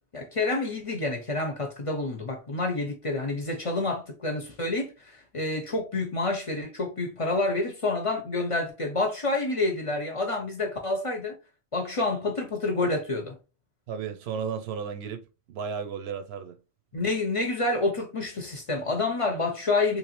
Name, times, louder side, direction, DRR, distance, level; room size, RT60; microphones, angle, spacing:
voice 1, 0.1-11.4 11.7-13.4 16.9-20.0, left 2 dB, 40° left, 0.6 m, -28 dB
voice 2, 13.9-16.6, right 6 dB, 90° right, 0.9 m, -34 dB
3.1 x 2.5 x 2.9 m
omnidirectional pair, 1.1 m